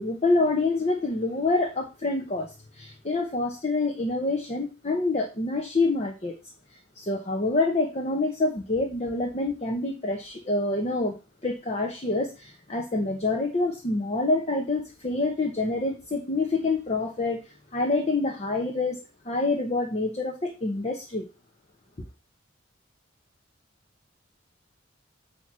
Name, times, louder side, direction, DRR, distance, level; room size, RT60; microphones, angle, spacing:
voice 1, 0.0-6.3 7.0-11.2 11.4-17.4 17.7-21.3, left 2 dB, 35° left, 3 dB, 1.0 m, -27 dB
8.7 x 3.0 x 6.1 m, 0.30 s
head